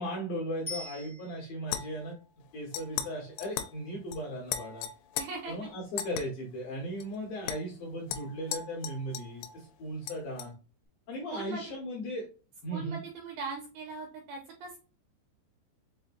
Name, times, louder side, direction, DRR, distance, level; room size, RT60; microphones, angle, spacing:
voice 1, 0.0-2.2 2.5-4.9 5.5-10.5 11.1-12.3 12.6-13.0, equal, 65° left, -2 dB, 2.3 m, -37 dB
Bicycle bell, 0.7-1.8 10.8-10.9, left 2 dB, 40° left, 0.7 m, -43 dB
sound 1, 1.7-2.1 2.7-3.1 3.4-3.8 4.1-4.2 4.5-5.3 6.0-6.2 7.0-7.1 7.5-7.6 8.1-9.6 10.1-10.5, left 10 dB, 85° left, 3.0 m, -37 dB
voice 2, 5.2-5.7 11.3-11.7 12.7-14.8, right 4 dB, 85° right, 2 dB, 2.4 m, -40 dB
7.1 x 2.6 x 2.5 m, 0.36 s
omnidirectional pair, 5.5 m